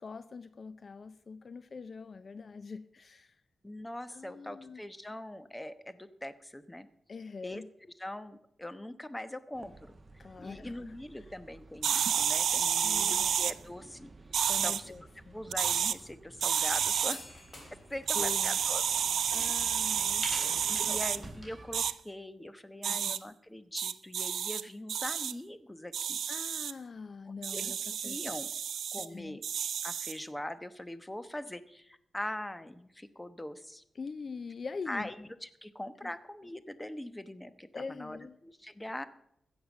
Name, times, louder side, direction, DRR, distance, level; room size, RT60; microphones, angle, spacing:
voice 1, 0.0-3.4 4.1-4.8 7.1-7.7 10.2-10.8 12.8-13.3 14.4-15.4 18.1-18.6 19.3-21.0 22.9-23.2 26.3-27.8 28.0-28.3 29.0-29.4 34.0-35.1 36.0-36.1 37.7-38.4, left 4 dB, 50° left, 14 dB, 0.6 m, -43 dB
voice 2, 3.6-6.9 7.4-7.6 8.0-10.0 10.4-14.1 14.6-14.9 15.3-17.2 17.7-18.8 19.3-19.6 20.7-26.2 27.5-27.7 28.0-28.5 28.9-29.4 29.8-33.8 34.9-39.1, left 1 dB, 10° left, 13 dB, 1.0 m, -42 dB
sound 1, 9.5-21.9, right 2 dB, 35° right, 1.2 m, -54 dB
sound 2, 11.8-13.5 14.3-14.8 15.5-16.0 16.4-17.1 18.1-21.2 21.7-21.9 22.8-23.2 23.8-24.6 24.9-25.3 25.9-26.7 27.4-29.1 29.4-30.2, right 8 dB, 85° right, 0.4 m, -30 dB
sound 3, 16.6-21.6, left 1 dB, 25° left, 3.7 m, -46 dB
15.5 x 7.2 x 7.2 m, 0.72 s
cardioid pair, 90°, 0 cm